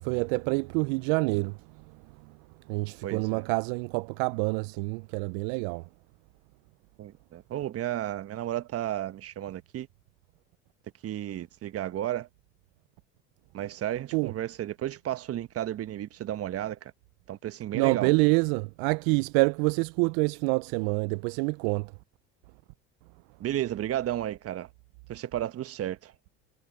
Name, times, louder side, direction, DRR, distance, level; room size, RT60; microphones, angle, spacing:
voice 1, 0.0-1.5 2.7-5.8 14.1-14.3 17.7-21.9, right 30 dB, 70° right, 0.5 m, -26 dB
voice 2, 3.0-3.5 7.0-9.9 11.0-12.3 13.5-16.9 17.3-18.1 23.4-24.7 25.1-26.1, right 12 dB, 45° right, 1.3 m, -33 dB
hypercardioid pair, 80°, 33 cm